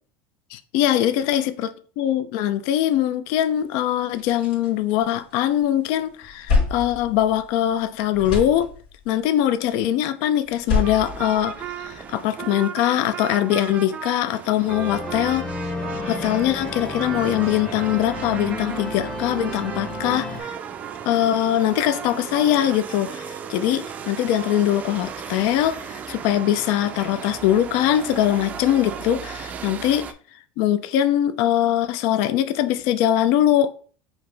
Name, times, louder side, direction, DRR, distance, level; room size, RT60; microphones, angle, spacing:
voice 1, 0.5-8.7 9.1-15.5 16.1-20.6 21.1-30.1 30.6-33.7, left 11 dB, 65° left, 0.4 m, -22 dB
sound 1, 3.5-3.6 3.9-5.6 6.0-7.8 8.1-9.2 10.4-12.1, left 4 dB, 90° left, 2.0 m, -27 dB
sound 2, 10.8-30.1, right 8 dB, 30° right, 0.4 m, -35 dB
sound 3, 14.7-20.4, left 1 dB, 15° left, 0.8 m, -32 dB
5.5 x 2.9 x 3.3 m
supercardioid pair, 145°, 5 cm